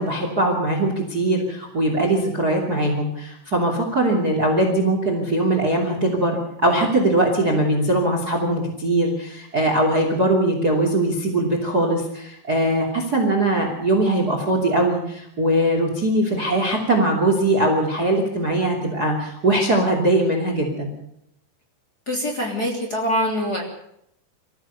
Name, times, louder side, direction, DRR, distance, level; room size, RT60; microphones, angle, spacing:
voice 1, 0.0-20.9, right 1 dB, 25° right, 3 dB, 2.7 m, -21 dB
voice 2, 22.1-23.6, equal, 25° left, 0 dB, 3.3 m, -24 dB
25.0 x 15.0 x 6.9 m, 0.75 s
omnidirectional pair, 5.1 m